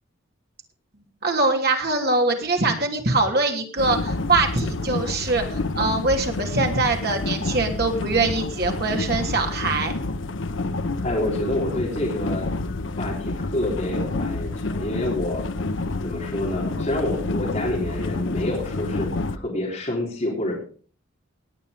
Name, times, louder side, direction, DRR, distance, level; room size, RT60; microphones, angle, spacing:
voice 1, 1.2-9.9, right 3 dB, 50° right, 3 dB, 3.1 m, -23 dB
sound 1, 3.8-19.4, left 2 dB, 70° left, 0.8 m, -29 dB
voice 2, 11.0-12.5 13.0-15.5 16.0-20.6, left 1 dB, 35° left, -3 dB, 3.6 m, -27 dB
18.5 x 8.8 x 5.1 m, 0.42 s
head